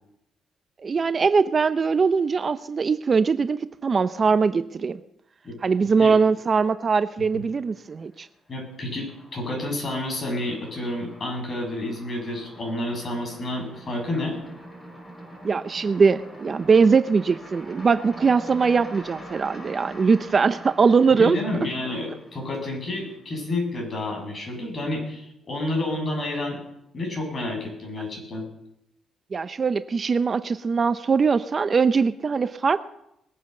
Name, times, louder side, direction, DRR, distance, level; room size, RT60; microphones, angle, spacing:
voice 1, 0.8-5.0 5.6-8.3 15.4-21.4 29.3-32.8, right 5 dB, 40° right, 13 dB, 0.7 m, -21 dB
sound 1, 7.2-7.9 8.2-23.4, right 1 dB, 15° left, 6.3 m, -45 dB
voice 2, 8.5-14.4 21.1-26.6 26.9-28.5, left 1 dB, 40° left, 0 dB, 7.7 m, -30 dB
20.5 x 8.7 x 6.8 m, 0.78 s
cardioid pair, 90°, 0 cm